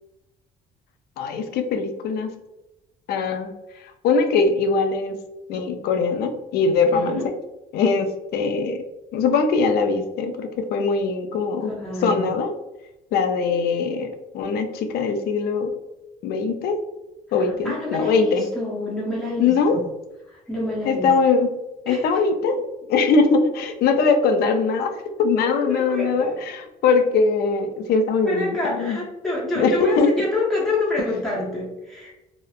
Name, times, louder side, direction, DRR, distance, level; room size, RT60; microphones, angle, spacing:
voice 1, 1.2-2.3 3.1-3.5 4.0-5.1 5.5-7.2 7.7-8.8 9.1-12.5 13.1-15.7 16.2-16.8 17.3-18.5 19.4-19.8 20.9-21.5 21.9-22.6 22.9-29.0 29.6-30.1, left 4 dB, 70° left, 7 dB, 0.4 m, -21 dB
voice 2, 6.9-7.3 11.6-12.3 17.3-19.8 20.3-21.1 21.9-22.2 25.4-26.4 28.2-32.1, left 2 dB, ahead, -6 dB, 0.7 m, -28 dB
2.8 x 2.0 x 2.3 m, 0.99 s
cardioid pair, 110°, 17 cm